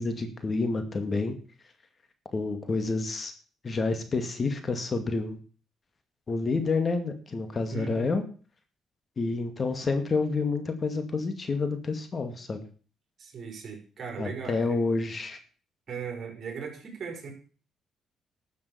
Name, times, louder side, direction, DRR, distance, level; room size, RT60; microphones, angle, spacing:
voice 1, 0.0-1.3 2.3-3.3 3.6-5.4 6.3-8.2 9.2-12.6 14.2-15.4, left 3 dB, 40° left, 8 dB, 2.2 m, -29 dB
voice 2, 7.7-8.1 13.2-14.8 15.9-17.3, right 6 dB, 50° right, 3 dB, 5.1 m, -38 dB
12.5 x 7.2 x 6.9 m, 0.40 s
cardioid pair, 90°, 0 cm